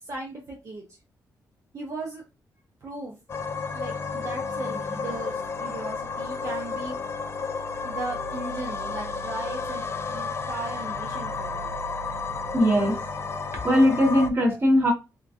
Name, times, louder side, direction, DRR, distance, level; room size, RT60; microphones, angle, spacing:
voice 1, 0.0-0.8 1.7-2.2 2.8-3.2 3.7-6.9 7.4-7.5 7.8-11.8, right 3 dB, 50° right, 0.7 m, -37 dB
sound 1, 3.3-14.3, left 4 dB, 40° left, 0.3 m, -32 dB
voice 2, 12.5-13.0 13.6-14.9, equal, 30° right, 1.2 m, -20 dB
3.0 x 2.4 x 2.5 m
cardioid pair, 95°, 7 cm